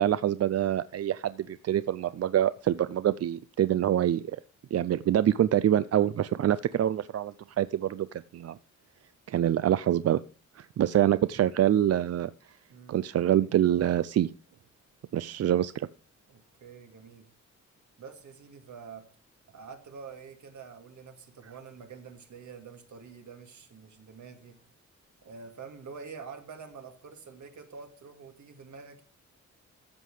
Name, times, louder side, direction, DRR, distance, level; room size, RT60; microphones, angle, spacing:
voice 1, 0.0-4.2 4.7-8.6 9.3-10.2 10.6-12.3 12.9-14.3 15.1-15.9, right 11 dB, 55° right, 15 dB, 0.4 m, -25 dB
voice 2, 12.7-13.0 16.3-17.3 18.0-19.0 19.5-24.6 25.2-29.0, right 5 dB, 75° right, 5 dB, 2.2 m, -47 dB
13.5 x 7.6 x 4.9 m, 0.38 s
wide cardioid pair, 150°, 29 cm